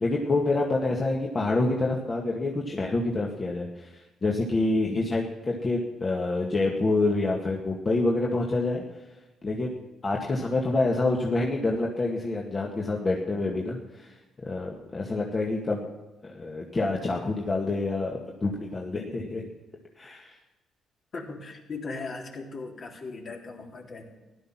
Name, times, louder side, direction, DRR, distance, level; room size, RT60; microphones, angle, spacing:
voice 1, 0.0-8.8 9.4-9.8 10.0-14.1 14.5-15.9 16.2-19.5 20.0-20.3, left 2 dB, 35° left, -1 dB, 2.0 m, -27 dB
voice 2, 21.1-24.0, left 3 dB, 50° left, 0 dB, 3.6 m, -38 dB
15.5 x 12.0 x 6.0 m, 1.1 s
cardioid pair, 90°, 0 cm